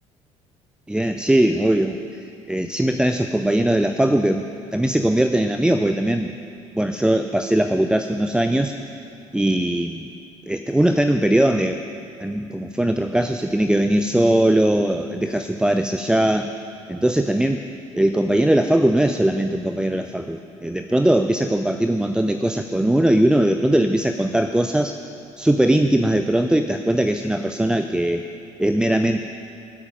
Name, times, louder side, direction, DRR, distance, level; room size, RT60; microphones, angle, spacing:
voice 1, 0.9-4.5 4.7-6.4 6.7-8.7 9.3-10.1 10.5-11.8 12.2-16.5 16.9-17.6 17.9-24.9 25.4-28.2 28.6-29.2, right 1 dB, 5° right, 6 dB, 0.5 m, -20 dB
23.0 x 8.0 x 5.1 m, 2.6 s
figure-of-eight pair, 55°, 16 cm